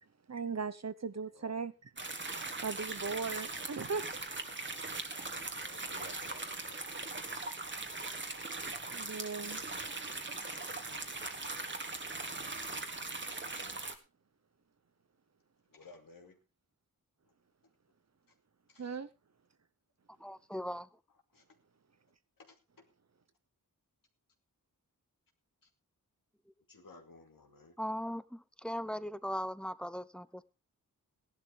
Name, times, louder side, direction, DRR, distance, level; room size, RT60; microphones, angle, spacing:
voice 1, 0.3-1.9 2.6-4.4 8.9-9.6 18.8-19.1, right 5 dB, 50° right, 1.1 m, -38 dB
voice 2, 1.3-1.7 5.5-7.2 15.7-16.4 18.7-19.0 21.3-21.4 22.4-22.8 26.7-27.8, left 3 dB, 70° left, 2.5 m, -57 dB
sound 1, 2.0-14.0, right 3 dB, 35° right, 1.9 m, -40 dB
voice 3, 20.2-20.9 27.8-30.4, equal, 5° left, 0.8 m, -39 dB
17.0 x 11.5 x 3.5 m
wide cardioid pair, 120°, 35 cm